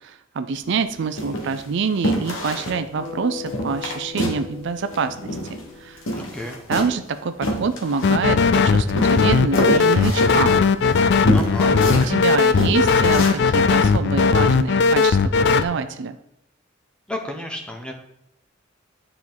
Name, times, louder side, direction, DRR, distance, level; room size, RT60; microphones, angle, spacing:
voice 1, 0.0-5.3 5.8-6.0 6.7-10.6 11.7-11.8 12.0-16.2, right 5 dB, 65° right, 10 dB, 0.5 m, -26 dB
sound 1, 0.6-0.8 1.2-1.7 2.0-2.8 3.1-3.2 3.5-4.5 4.7-5.7 6.0-8.5 9.0-12.3 12.6-13.4 13.8-14.0, equal, 75° left, 1.3 m, -27 dB
Bass guitar, 3.0-7.4, left 6 dB, 20° left, 2.1 m, -39 dB
voice 2, 6.1-6.6 11.3-11.7 17.1-17.9, left 1 dB, 5° left, 3 dB, 1.0 m, -31 dB
sound 2, 8.0-15.6, left 5 dB, 60° left, 0.4 m, -17 dB
9.5 x 4.5 x 3.9 m, 0.78 s
head